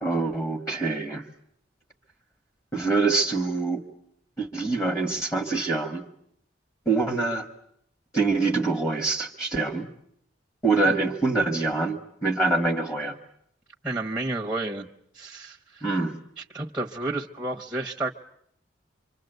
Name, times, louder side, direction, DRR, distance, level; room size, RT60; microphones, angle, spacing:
voice 1, 0.0-1.2 2.7-3.8 4.4-6.1 6.8-7.5 8.1-9.9 10.6-13.1 15.8-16.2, right 3 dB, 15° left, 6 dB, 1.5 m, -25 dB
voice 2, 13.8-14.9 15.1-15.8 16.4-18.1, right 2 dB, 5° right, 1 dB, 1.0 m, -31 dB
25.5 x 25.5 x 8.0 m, 0.71 s
head